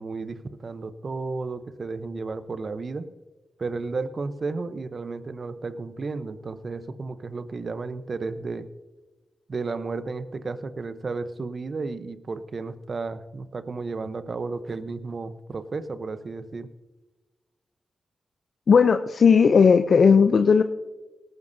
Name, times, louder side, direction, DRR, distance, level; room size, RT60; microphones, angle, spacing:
voice 1, 0.0-3.1 3.6-8.7 9.5-16.7, right 4 dB, 55° right, 12 dB, 0.8 m, -33 dB
voice 2, 18.7-20.6, left 6 dB, 65° left, 9 dB, 0.5 m, -16 dB
18.0 x 13.5 x 2.7 m, 1.2 s
supercardioid pair, 40°, 0 cm